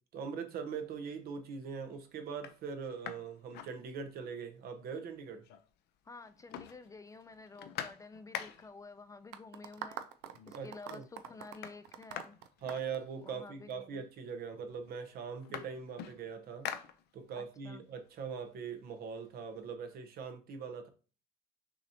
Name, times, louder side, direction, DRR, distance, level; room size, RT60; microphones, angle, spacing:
voice 1, 0.1-5.4 10.5-11.0 12.6-16.7 17.1-20.9, right 6 dB, 65° right, 0.8 m, -41 dB
sound 1, 0.9-1.4 1.9-2.0 2.3-4.4 4.7-4.8 5.0-5.9 6.2-8.9 9.8-9.9 10.3-10.8 11.1-13.5 14.3-14.4 14.7-17.5 17.9-19.6, left 10 dB, 80° left, 0.5 m, -46 dB
voice 2, 6.0-10.1 10.5-12.4 13.2-14.1 17.4-17.8, left 3 dB, 20° left, 0.3 m, -51 dB
sound 2, 9.3-13.7, right 10 dB, 85° right, 0.5 m, -45 dB
6.0 x 2.8 x 2.7 m
cardioid pair, 110°, 17 cm